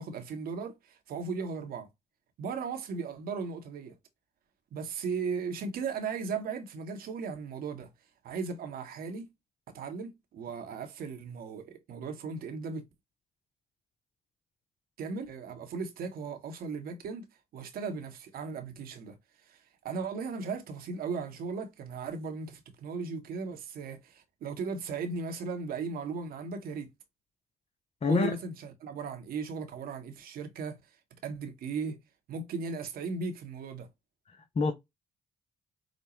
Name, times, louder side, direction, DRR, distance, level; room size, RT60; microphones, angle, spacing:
voice 1, 0.0-1.9 2.4-4.0 4.7-7.9 8.2-9.3 9.7-12.9 15.0-17.2 17.5-19.2 19.5-19.6 19.8-26.9 28.1-30.8 31.2-32.0 32.3-33.9, right 5 dB, 65° right, 1.0 m, -37 dB
voice 2, 34.3-34.7, left 4 dB, 40° left, 0.7 m, -27 dB
5.0 x 2.2 x 2.9 m
hypercardioid pair, 50°, 17 cm